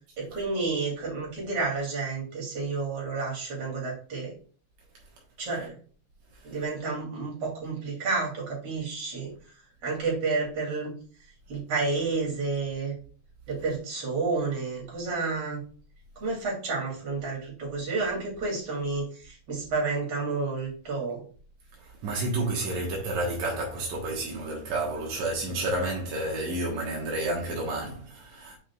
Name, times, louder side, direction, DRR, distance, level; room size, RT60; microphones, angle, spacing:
voice 1, 0.2-4.3 5.4-5.7 6.4-9.3 9.8-10.9 11.5-12.9 13.5-15.6 16.2-21.2, right 4 dB, 35° right, 3.0 m, -30 dB
voice 2, 21.8-28.6, right 2 dB, 80° right, 1.6 m, -30 dB
7.3 x 6.1 x 2.4 m
omnidirectional pair, 5.5 m